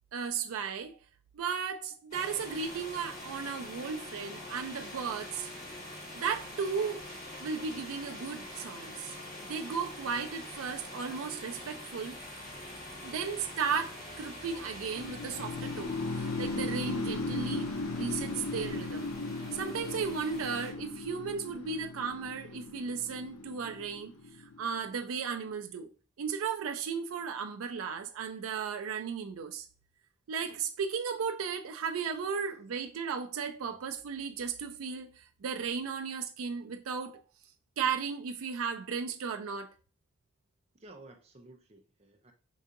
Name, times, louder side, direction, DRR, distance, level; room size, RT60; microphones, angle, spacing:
voice 1, 0.1-1.0 1.3-5.5 6.1-7.0 7.4-12.2 13.0-19.1 19.5-25.9 26.2-29.7 30.3-37.2 37.8-39.7, right 6 dB, 90° right, 0.4 m, -35 dB
sound 1, 2.1-20.7, left 1 dB, 35° left, 1.4 m, -45 dB
sound 2, 15.0-24.9, left 3 dB, 90° left, 0.5 m, -37 dB
voice 2, 40.7-42.3, right 2 dB, 30° right, 0.5 m, -54 dB
5.5 x 2.6 x 2.4 m
head